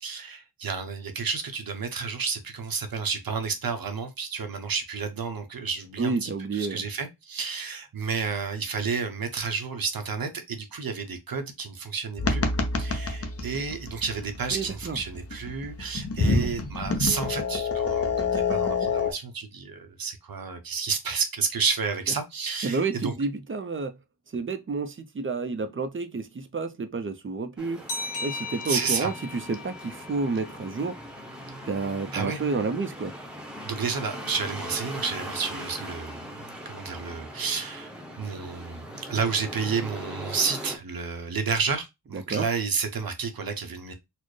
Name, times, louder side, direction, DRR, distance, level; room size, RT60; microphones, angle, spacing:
voice 1, 0.0-12.4 12.8-23.1 28.6-29.1 32.1-32.4 33.6-36.3 36.6-43.9, right 5 dB, 55° right, 0.8 m, -31 dB
voice 2, 6.0-6.8 14.5-15.0 16.2-16.5 22.6-23.9 24.3-27.8 28.2-31.0 31.7-33.1 42.1-42.4, right 4 dB, 30° right, 0.4 m, -30 dB
sound 1, 12.2-19.1, left 4 dB, 35° left, 0.6 m, -28 dB
sound 2, 27.6-40.8, equal, ahead, 0.8 m, -40 dB
sound 3, 27.9-31.2, left 3 dB, 75° left, 1.8 m, -38 dB
4.2 x 2.0 x 3.1 m
wide cardioid pair, 130°, 42 cm